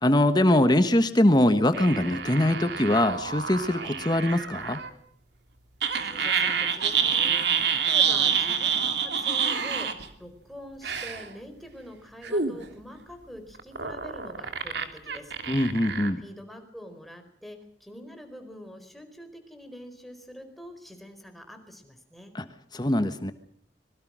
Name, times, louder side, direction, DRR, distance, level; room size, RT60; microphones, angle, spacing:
voice 1, 0.0-4.8 15.5-16.2 22.3-22.4 22.7-23.3, left 1 dB, 25° left, 9 dB, 1.2 m, -22 dB
sound 1, 1.7-4.9 5.8-10.1 10.8-11.3 12.2-12.6 13.5-16.1, right 7 dB, 75° right, 2.9 m, -27 dB
voice 2, 6.0-15.3 16.2-22.3, equal, ahead, 5 dB, 4.4 m, -45 dB
26.0 x 22.5 x 6.2 m, 0.66 s
head